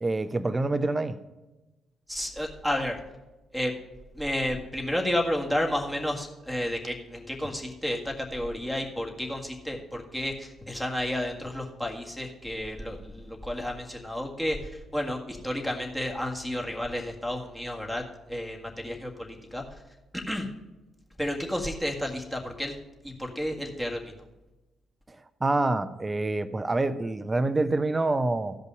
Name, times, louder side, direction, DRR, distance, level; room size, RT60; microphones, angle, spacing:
voice 1, 0.0-1.2 25.1-25.2 25.4-28.6, right 2 dB, 25° right, 13 dB, 0.7 m, -26 dB
voice 2, 2.1-3.0 3.5-3.7 4.1-19.6 20.1-20.5 21.2-22.8 23.0-24.2, left 1 dB, 5° left, 0 dB, 1.8 m, -31 dB
14.5 x 5.4 x 5.3 m, 1.1 s
figure-of-eight pair, 40°, 0 cm